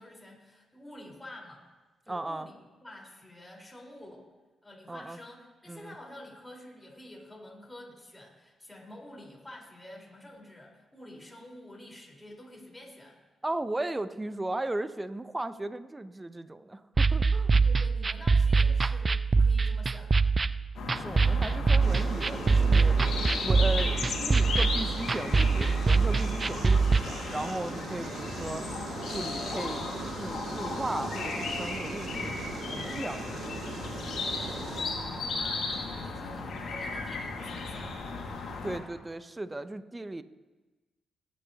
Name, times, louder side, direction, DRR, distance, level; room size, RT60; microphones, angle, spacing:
voice 1, 0.0-1.6 2.1-4.3 4.6-5.4 5.6-13.2 17.5-20.3 34.3-38.0, left 1 dB, 15° left, -2 dB, 4.4 m, -48 dB
voice 2, 2.1-2.5 4.9-5.2 5.7-5.9 13.4-17.5 20.9-23.0 23.4-28.6 29.1-29.9 30.2-33.5 38.6-40.2, right 2 dB, 20° right, 12 dB, 0.8 m, -36 dB
sound 1, 17.0-27.0, right 4 dB, 40° right, 0.4 m, -24 dB
sound 2, 20.7-38.8, left 3 dB, 70° left, 2.1 m, -35 dB
sound 3, 21.8-34.8, right 6 dB, 65° right, 1.0 m, -41 dB
21.5 x 8.6 x 2.9 m, 1.2 s
hypercardioid pair, 45°, 0 cm